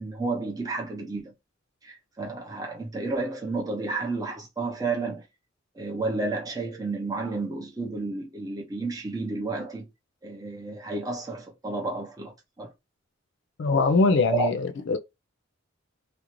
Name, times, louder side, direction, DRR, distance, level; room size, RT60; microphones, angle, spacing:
voice 1, 0.0-1.3 1.8-5.2 5.7-9.9 10.2-12.7 14.3-14.5, right 3 dB, 20° right, 0.6 m, -31 dB
voice 2, 13.6-15.0, left 3 dB, 65° left, 0.4 m, -22 dB
2.5 x 2.0 x 2.9 m
head